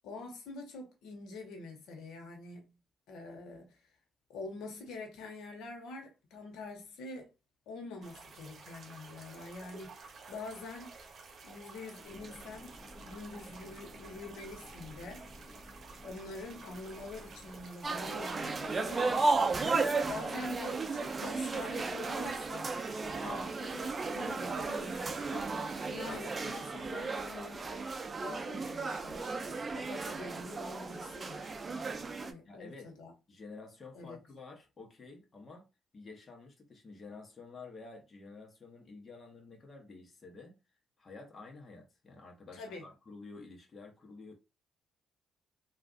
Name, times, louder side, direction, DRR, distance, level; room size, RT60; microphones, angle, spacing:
voice 1, 0.0-2.7 3.1-3.8 4.3-7.3 7.7-10.9 11.4-12.8 13.0-15.3 16.0-19.1 20.1-22.7 23.2-27.7 28.2-29.4 29.7-31.5 32.2-33.1 33.9-34.2 42.5-42.9, left 3 dB, 85° left, 0.9 m, -45 dB
sound 1, 8.0-26.4, right 4 dB, 50° right, 0.9 m, -52 dB
sound 2, 12.1-17.7, equal, 5° right, 1.1 m, -54 dB
sound 3, 17.8-32.3, right 3 dB, 35° right, 0.5 m, -34 dB
voice 2, 32.4-32.9 33.3-35.7 35.9-40.6 41.0-44.3, left 3 dB, 35° left, 1.0 m, -50 dB
3.2 x 2.4 x 2.6 m
cardioid pair, 90°, 0 cm